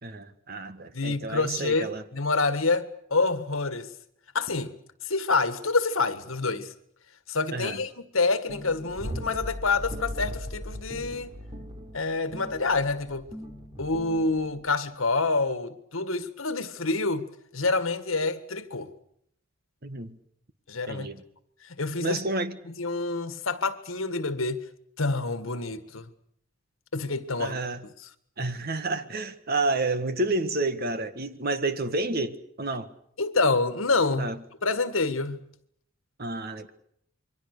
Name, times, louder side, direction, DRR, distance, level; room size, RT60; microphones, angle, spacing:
voice 1, 0.0-2.0 7.5-7.8 19.8-20.2 20.9-21.2 22.0-22.6 27.4-27.8 28.4-32.9 34.2-34.4 36.2-36.7, right 2 dB, 50° right, 1.6 m, -30 dB
voice 2, 0.9-3.9 4.3-4.7 5.0-6.7 7.3-11.3 11.9-13.3 13.8-17.3 17.5-18.9 20.7-21.1 21.6-22.2 22.7-24.6 25.0-26.1 26.9-27.6 33.2-35.4, left 3 dB, 80° left, 1.8 m, -27 dB
sound 1, 8.5-14.7, equal, 25° right, 3.4 m, -38 dB
28.0 x 23.5 x 6.8 m
head